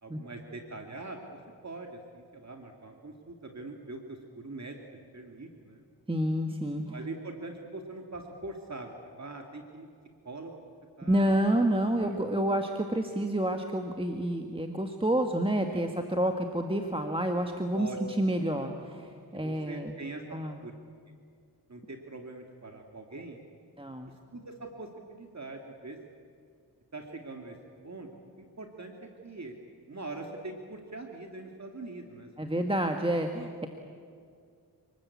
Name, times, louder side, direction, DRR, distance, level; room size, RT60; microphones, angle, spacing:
voice 1, 0.0-4.8 5.1-5.9 6.9-9.9 10.2-10.5 11.0-11.3 12.0-12.2 15.7-15.8 17.7-18.0 19.4-20.2 20.6-20.7 21.7-23.4 24.3-26.0 26.9-27.6 27.8-28.1 28.4-28.9 29.2-29.5 29.9-32.9, right 2 dB, 40° right, 2 dB, 2.3 m, -43 dB
voice 2, 6.1-6.9 11.1-19.9 20.3-20.6 23.8-24.1 32.4-33.7, right 1 dB, 15° right, 4 dB, 1.6 m, -29 dB
28.5 x 20.0 x 8.5 m, 2.2 s
cardioid pair, 65°, 41 cm